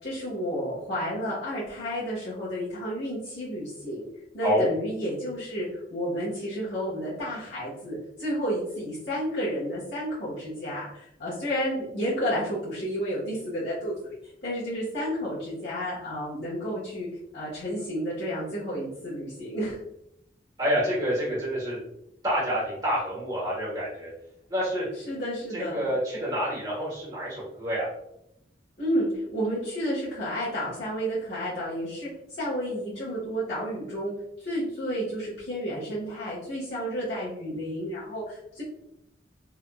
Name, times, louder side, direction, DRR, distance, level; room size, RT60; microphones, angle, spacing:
voice 1, 0.0-4.1 4.3-14.1 14.4-17.1 17.3-19.8 25.1-25.9 28.8-32.1 32.4-34.1 34.4-38.6, equal, 75° left, -10 dB, 1.4 m, -31 dB
voice 2, 20.6-21.8 22.2-24.1 24.5-24.9 25.5-27.9, equal, 20° right, -7 dB, 1.3 m, -28 dB
3.6 x 2.6 x 2.3 m, 0.78 s
head